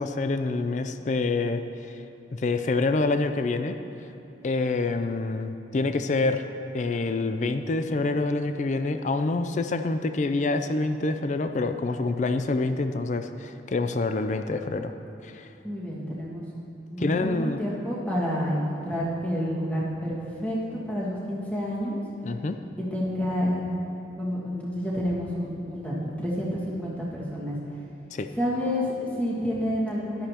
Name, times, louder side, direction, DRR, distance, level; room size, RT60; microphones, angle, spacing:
voice 1, 0.0-1.6 2.3-3.8 4.4-6.4 6.7-14.9 15.2-15.5 17.0-17.6 22.2-22.6 28.1-28.3, left 3 dB, 40° left, 8 dB, 0.4 m, -26 dB
voice 2, 15.6-16.4 16.9-22.0 22.9-23.6 24.2-27.6 28.3-30.3, equal, 10° left, -6 dB, 1.9 m, -29 dB
13.0 x 11.5 x 2.9 m, 2.9 s
head